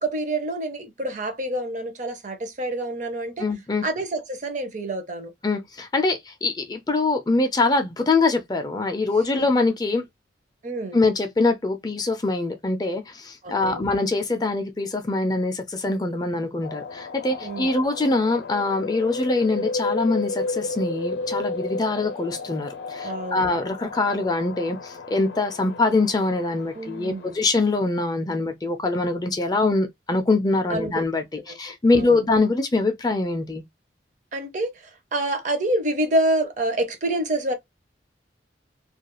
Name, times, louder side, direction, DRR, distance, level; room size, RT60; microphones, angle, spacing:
voice 1, 0.0-3.5 3.8-5.3 9.4-9.5 10.6-11.0 13.4-13.8 17.4-17.8 23.0-23.5 26.8-27.4 30.7-30.9 31.5-31.6 31.9-32.2 34.3-37.5, right 1 dB, 40° right, 0.5 m, -27 dB
voice 2, 3.4-3.8 5.4-10.0 10.9-31.2 31.6-33.6, left 3 dB, 20° left, 0.4 m, -23 dB
sound 1, 16.6-27.9, left 3 dB, 80° left, 0.5 m, -33 dB
2.3 x 2.2 x 2.9 m
head